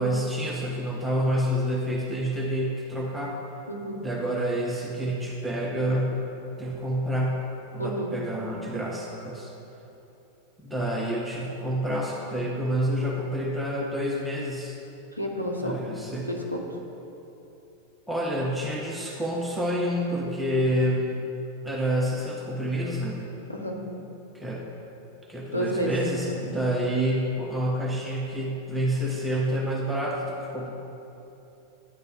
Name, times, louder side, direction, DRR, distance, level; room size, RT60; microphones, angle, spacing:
voice 1, 0.0-3.4 4.0-6.2 6.6-7.5 7.7-9.5 10.6-14.8 15.6-16.3 18.1-21.2 21.6-23.2 24.3-24.6 25.3-30.7, equal, 5° right, -4 dB, 0.7 m, -28 dB
voice 2, 3.7-4.0 7.8-8.1 15.2-15.7 16.3-16.6 23.5-23.8 25.5-25.9 26.3-26.5, equal, 85° left, 0 dB, 0.7 m, -30 dB
9.7 x 3.4 x 4.2 m, 3.0 s
figure-of-eight pair, 90°, 0 cm